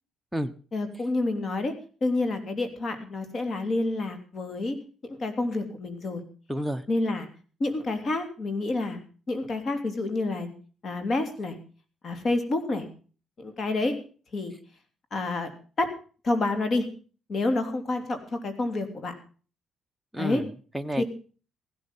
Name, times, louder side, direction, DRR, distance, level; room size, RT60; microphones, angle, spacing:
voice 1, 0.7-1.7 2.0-4.8 5.0-6.2 6.9-7.3 7.6-9.0 9.3-10.5 10.8-11.6 12.0-12.9 13.4-14.0 14.3-14.5 15.1-15.5 15.8-15.9 16.2-16.9 17.3-19.1 20.2-20.4 21.0-21.1, left 2 dB, 45° left, 8 dB, 3.1 m, -28 dB
voice 2, 6.5-6.8 20.1-21.0, equal, ahead, 6 dB, 1.0 m, -31 dB
16.0 x 12.0 x 5.5 m, 0.39 s
cardioid pair, 90°, 0 cm